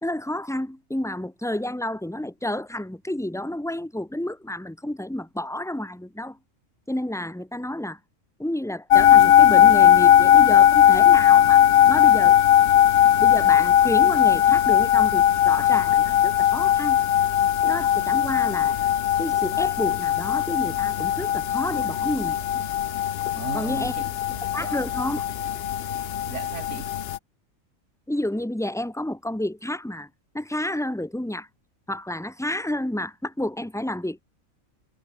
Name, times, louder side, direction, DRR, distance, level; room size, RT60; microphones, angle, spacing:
voice 1, 0.0-6.4 6.9-8.0 8.4-12.4 13.2-17.0 17.6-18.8 19.2-22.7 23.5-23.9 24.5-25.3 28.1-30.1 30.3-31.5 31.9-34.2, left 1 dB, ahead, 1.3 m, -30 dB
sound 1, 8.9-27.2, left 11 dB, 60° left, 0.7 m, -18 dB
voice 2, 23.3-24.8 26.3-26.9, right 5 dB, 65° right, 2.1 m, -37 dB
omnidirectional pair, 1.4 m